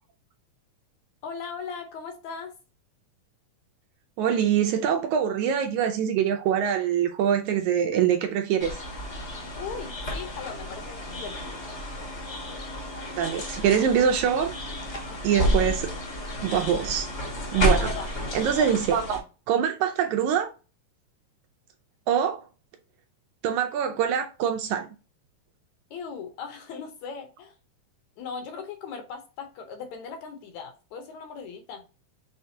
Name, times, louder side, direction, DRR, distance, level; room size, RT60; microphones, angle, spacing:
voice 1, 1.2-2.5 9.6-11.6 15.1-15.4 17.8-18.1 18.6-18.7 25.9-27.5 28.2-31.8, left 5 dB, 70° left, 1.9 m, -38 dB
voice 2, 4.2-8.8 13.2-14.5 15.2-15.9 16.4-17.1 17.5-17.9 18.3-20.5 22.1-22.4 23.4-24.9, right 8 dB, 80° right, 1.8 m, -24 dB
sound 1, 8.6-19.2, equal, 50° left, 0.8 m, -31 dB
5.7 x 3.3 x 2.7 m
omnidirectional pair, 3.7 m